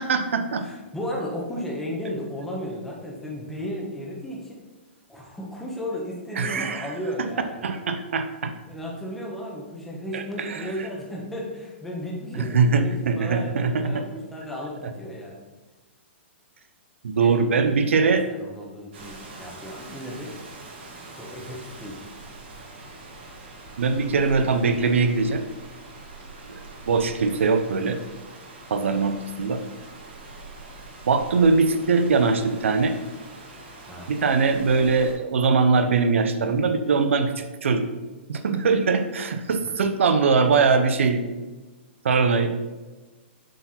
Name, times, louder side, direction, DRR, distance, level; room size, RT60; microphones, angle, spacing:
voice 1, 0.0-0.7 6.4-6.9 7.2-7.3 7.6-8.5 10.1-10.7 12.3-14.0 17.0-18.3 23.8-25.4 26.5-28.0 28.7-29.6 31.1-33.0 34.1-37.9 38.3-41.3 42.0-42.5, right 4 dB, 85° right, 8 dB, 0.7 m, -22 dB
voice 2, 0.6-4.6 5.1-7.6 8.6-15.4 17.2-20.3 21.2-22.0 33.9-34.1, equal, 5° left, -3 dB, 1.2 m, -34 dB
Rain, 18.9-35.1, right 2 dB, 60° right, 2.1 m, -43 dB
7.5 x 4.6 x 4.3 m, 1.2 s
hypercardioid pair, 155°, 7 cm